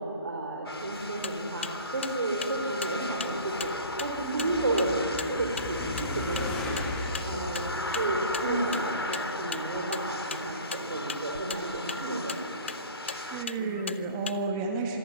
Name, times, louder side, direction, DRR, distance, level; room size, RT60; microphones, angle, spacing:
voice 1, 0.0-6.8 7.2-12.7 13.6-13.9, right 2 dB, 45° right, -1 dB, 4.7 m, -32 dB
sound 1, 0.7-13.5, left 1 dB, 90° left, 2.4 m, -36 dB
sound 2, 0.9-14.4, left 5 dB, 30° left, 0.7 m, -40 dB
sound 3, 3.4-8.9, left 2 dB, 5° left, 1.6 m, -38 dB
voice 2, 4.2-4.5 13.0-15.0, right 3 dB, 10° right, 4 dB, 1.4 m, -32 dB
26.0 x 21.0 x 9.8 m, 2.8 s
figure-of-eight pair, 165°, 12 cm